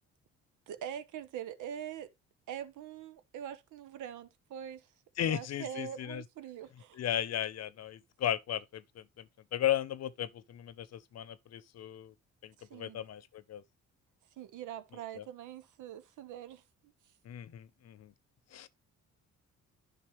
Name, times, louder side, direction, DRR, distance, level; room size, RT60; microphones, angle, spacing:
voice 1, 0.7-2.1 2.5-4.8 5.2-7.0 12.6-13.0 14.4-16.6, right 9 dB, 80° right, 1.1 m, -43 dB
voice 2, 5.2-6.2 6.9-9.3 9.5-12.1 12.4-13.6 15.1-15.2 17.2-18.1 18.5-18.7, left 11 dB, 55° left, 0.8 m, -36 dB
10.5 x 5.4 x 3.1 m
cardioid pair, 90°, 30 cm